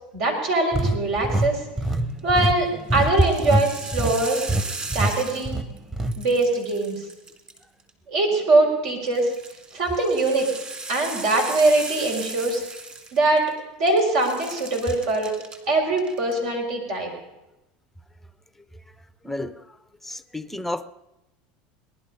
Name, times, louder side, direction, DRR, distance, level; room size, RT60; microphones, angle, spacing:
voice 1, 0.1-1.6 2.2-4.4 4.9-5.6 6.2-7.0 8.1-9.3 9.7-10.5 10.9-12.6 13.1-13.5 13.8-15.3 15.7-17.1, right 2 dB, 70° right, 1 dB, 4.9 m, -22 dB
sound 1, 0.7-3.7 3.9-4.2 4.5-4.6 4.9-5.1 5.5-6.1, right 1 dB, 10° right, 1.2 m, -24 dB
sound 2, 2.2-2.5 3.0-5.8 6.1-7.9 9.1-13.6 13.9-15.6 15.9-16.4, right 3 dB, 25° right, 2.6 m, -37 dB
voice 2, 19.2-19.6 20.1-20.9, left 1 dB, 5° left, 10 dB, 0.7 m, -31 dB
19.0 x 11.5 x 5.4 m, 0.98 s
hypercardioid pair, 100°, 4 cm